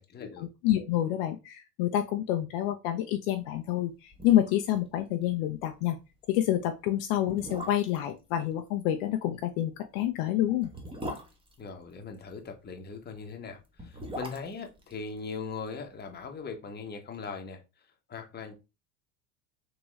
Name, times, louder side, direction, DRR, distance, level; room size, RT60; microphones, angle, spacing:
voice 1, 0.0-0.5 11.6-17.6 18.1-18.5, left 5 dB, 20° left, 0.9 m, -40 dB
voice 2, 0.6-6.0 6.3-10.7, left 12 dB, 55° left, 0.6 m, -28 dB
sound 1, 3.7-3.8 4.1-4.8 5.0-5.1 5.5-5.7 6.4-6.5 7.2-8.1 9.6-12.3 13.6-15.8 16.1-16.2, equal, 10° right, 0.9 m, -41 dB
3.6 x 3.0 x 3.1 m
hypercardioid pair, 85°, 47 cm